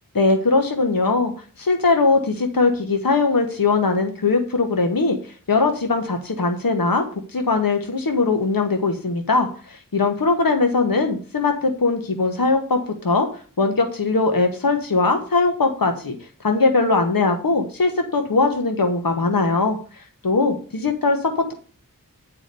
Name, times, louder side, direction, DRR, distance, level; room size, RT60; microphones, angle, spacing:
voice 1, 0.1-1.3 1.6-7.0 7.3-13.3 13.6-16.1 16.4-21.5, left 3 dB, 75° left, 5 dB, 1.3 m, -20 dB
9.0 x 4.9 x 6.8 m, 0.40 s
wide cardioid pair, 55°, 34 cm